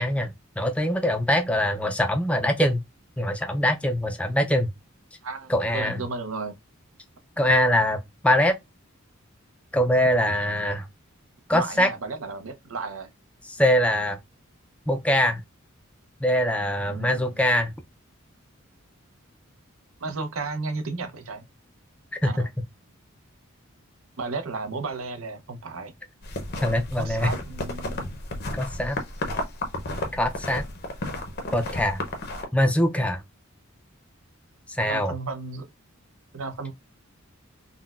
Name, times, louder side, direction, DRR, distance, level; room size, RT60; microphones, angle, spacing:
voice 1, 0.0-2.8 3.2-4.7 5.5-6.0 7.4-8.6 9.7-10.9 11.5-11.9 13.5-14.2 14.9-15.4 16.2-17.7 22.2-22.5 26.6-27.3 28.5-29.0 30.1-30.7 31.5-32.0 32.5-33.2 34.7-35.1, left 1 dB, 5° left, 0.4 m, -23 dB
voice 2, 5.2-6.6 11.5-13.1 16.9-17.3 20.0-21.4 22.2-22.5 24.2-25.9 27.0-28.1 34.8-35.7 36.3-36.7, right 3 dB, 75° right, 0.7 m, -33 dB
sound 1, 26.2-32.4, left 1 dB, 50° left, 0.7 m, -33 dB
3.8 x 2.1 x 2.4 m
head